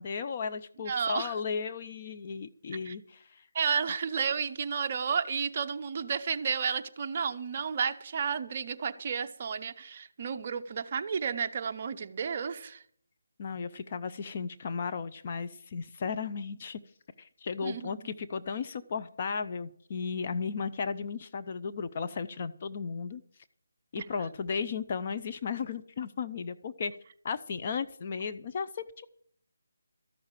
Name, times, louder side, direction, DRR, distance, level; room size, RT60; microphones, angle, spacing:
voice 1, 0.0-3.4 3.9-4.0 13.4-16.8 17.2-23.2 23.9-26.9 27.2-29.1, left 5 dB, 30° left, 9 dB, 0.5 m, -35 dB
voice 2, 0.9-1.3 2.9-3.0 3.5-12.8 17.6-17.9 24.0-24.1, right 6 dB, 30° right, 7 dB, 0.7 m, -32 dB
13.5 x 6.5 x 8.9 m, 0.62 s
hypercardioid pair, 170°, 0 cm